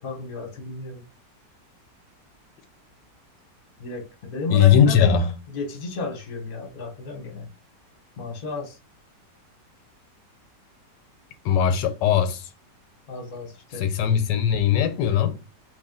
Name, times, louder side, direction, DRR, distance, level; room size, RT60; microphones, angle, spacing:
voice 1, 0.0-1.0 3.8-7.5 8.2-8.8 13.1-13.9, left 3 dB, 35° left, 0.9 m, -33 dB
voice 2, 4.5-5.3 11.4-12.5 13.8-15.3, left 8 dB, 85° left, 1.3 m, -19 dB
3.3 x 2.5 x 3.6 m
omnidirectional pair, 1.9 m